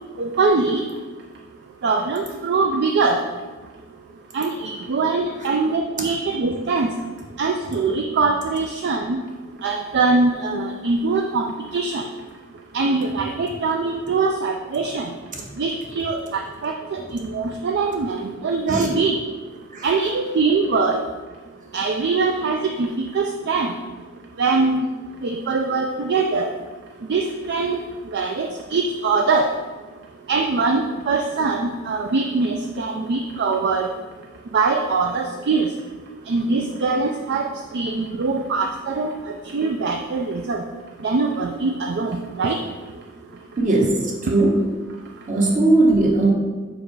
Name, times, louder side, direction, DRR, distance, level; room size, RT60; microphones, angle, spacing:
voice 1, 0.2-0.8 1.8-3.2 4.3-6.9 7.4-9.2 9.6-12.0 12.7-15.1 15.6-19.2 19.8-21.0 21.7-22.9 23.1-23.7 24.4-24.9 25.2-26.5 27.1-27.8 28.1-29.5 30.3-33.9 34.5-35.7 36.3-40.6 41.0-42.6, right 4 dB, 55° right, 4 dB, 0.4 m, -22 dB
voice 2, 43.6-43.9 44.3-44.6 45.3-46.3, right 2 dB, 40° right, 0 dB, 1.2 m, -17 dB
5.1 x 4.9 x 4.6 m, 1.4 s
head